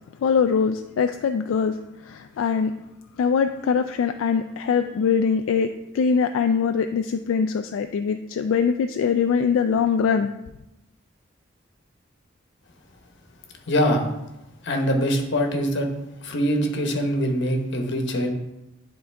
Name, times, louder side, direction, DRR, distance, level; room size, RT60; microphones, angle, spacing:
voice 1, 0.2-2.7 3.2-10.3, left 6 dB, 85° left, 7 dB, 0.3 m, -22 dB
voice 2, 13.7-14.1 14.6-15.9 16.2-18.3, equal, 65° left, 3 dB, 1.1 m, -23 dB
10.0 x 3.9 x 3.4 m, 0.91 s
head